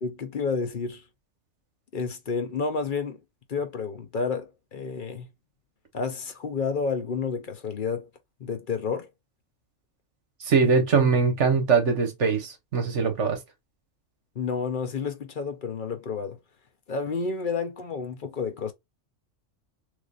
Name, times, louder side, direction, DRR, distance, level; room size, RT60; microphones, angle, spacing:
voice 1, 0.0-1.0 1.9-3.2 3.5-5.3 5.9-8.1 8.4-9.1 14.4-16.4 16.9-18.7, left 5 dB, 50° left, 0.7 m, -30 dB
voice 2, 10.5-13.4, right 5 dB, 65° right, 1.4 m, -22 dB
3.7 x 3.2 x 2.4 m
omnidirectional pair, 1.3 m